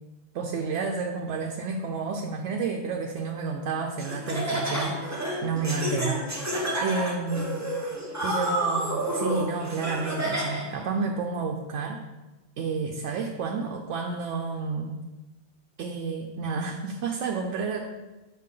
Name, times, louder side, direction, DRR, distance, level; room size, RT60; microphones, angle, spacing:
voice 1, 0.3-6.4 6.8-7.7 8.2-12.0 12.6-15.0 15.8-17.8, right 4 dB, 85° right, 2 dB, 0.9 m, -30 dB
Laughter, 4.0-10.8, right 1 dB, 15° right, 0.9 m, -30 dB
5.7 x 5.7 x 3.7 m, 1.1 s
omnidirectional pair, 1.2 m